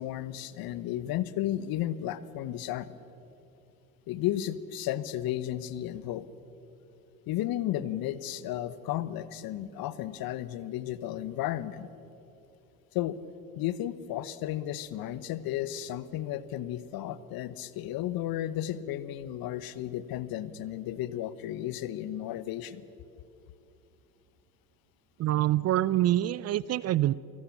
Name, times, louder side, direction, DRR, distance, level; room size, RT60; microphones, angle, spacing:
voice 1, 0.0-2.9 4.1-6.3 7.3-11.9 12.9-13.2 13.6-22.8, left 12 dB, 50° left, 16 dB, 1.2 m, -33 dB
voice 2, 25.2-27.1, right 14 dB, 35° right, 21 dB, 0.5 m, -25 dB
28.5 x 18.5 x 7.3 m, 2.9 s
hypercardioid pair, 70°, 44 cm